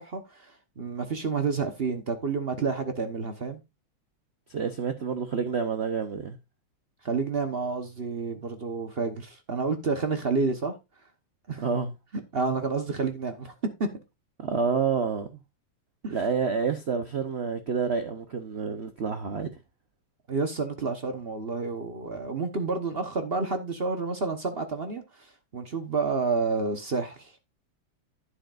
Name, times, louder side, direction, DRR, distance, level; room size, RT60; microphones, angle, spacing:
voice 1, 0.0-3.6 7.0-10.7 11.5-11.7 12.3-13.5 16.0-16.2 20.3-27.3, right 4 dB, 40° right, 0.8 m, -29 dB
voice 2, 4.5-6.4 11.6-11.9 14.4-15.3 16.1-19.5, right 5 dB, 70° right, 0.6 m, -28 dB
11.5 x 9.2 x 2.5 m
omnidirectional pair, 2.4 m